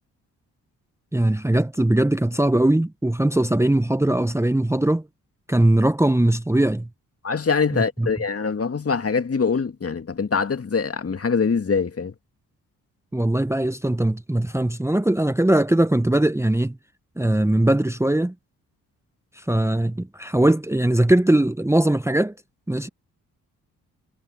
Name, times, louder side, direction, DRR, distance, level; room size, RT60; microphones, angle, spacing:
voice 1, 1.1-5.0 5.5-6.9 7.7-8.1 13.1-16.8 17.2-18.3 19.4-22.3 22.7-22.9, right 1 dB, 5° right, 1.2 m, -20 dB
voice 2, 7.2-12.1, left 5 dB, 35° left, 2.1 m, -23 dB
hypercardioid pair, 45°, 39 cm